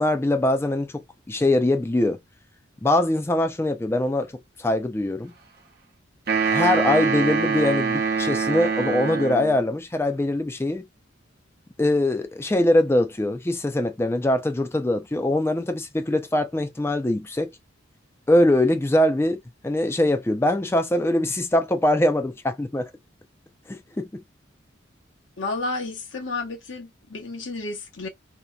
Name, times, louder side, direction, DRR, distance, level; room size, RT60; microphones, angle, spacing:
voice 1, 0.0-2.2 2.8-4.3 4.6-5.3 6.5-10.8 11.8-17.5 18.3-22.9 23.7-24.2, left 1 dB, 10° left, 0.3 m, -22 dB
sound 1, 6.3-9.6, right 5 dB, 50° right, 0.7 m, -24 dB
voice 2, 25.4-28.1, left 3 dB, 70° left, 0.8 m, -31 dB
2.8 x 2.1 x 2.2 m
head